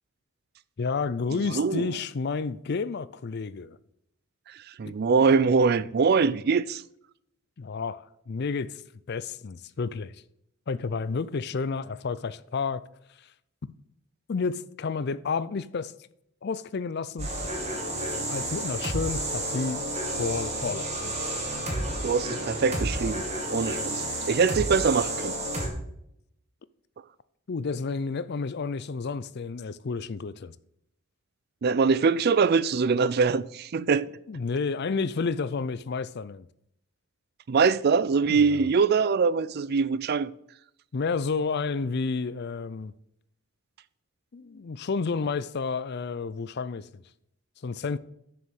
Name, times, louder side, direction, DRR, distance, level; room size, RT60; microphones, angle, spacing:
voice 1, 0.8-3.8 4.9-5.0 7.6-8.8 9.1-10.1 10.7-12.8 14.3-15.9 16.4-17.3 18.3-19.8 20.2-20.9 27.5-30.5 34.3-36.5 38.3-38.7 40.9-42.9 44.3-47.0 47.6-48.0, left 4 dB, 50° left, 0.4 m, -30 dB
voice 2, 1.3-1.9 4.8-6.8 22.0-23.2 23.5-25.3 31.6-34.1 37.5-40.3, right 5 dB, 45° right, 0.4 m, -23 dB
sound 1, 17.2-25.7, right 1 dB, 30° right, 2.2 m, -31 dB
7.0 x 6.9 x 6.5 m
head